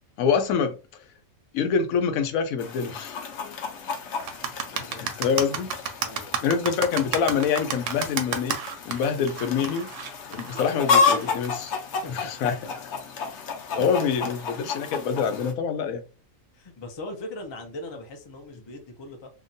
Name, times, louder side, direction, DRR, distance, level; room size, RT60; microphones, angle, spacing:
voice 1, 0.2-1.0 1.5-3.2 4.7-5.8 6.4-8.6 8.9-9.9 10.3-11.8 12.1-12.7 13.3-13.4 13.7-16.0, left 6 dB, 90° left, 1.0 m, -26 dB
Chicken rooster, 2.6-15.5, left 5 dB, 65° left, 0.9 m, -30 dB
sound 1, 4.2-11.7, right 7 dB, 70° right, 0.9 m, -31 dB
voice 2, 4.7-5.1 6.0-6.4 10.5-10.6 12.0-12.5 13.8-14.3 16.5-19.3, left 2 dB, 45° left, 0.3 m, -40 dB
2.9 x 2.2 x 2.6 m
omnidirectional pair, 1.4 m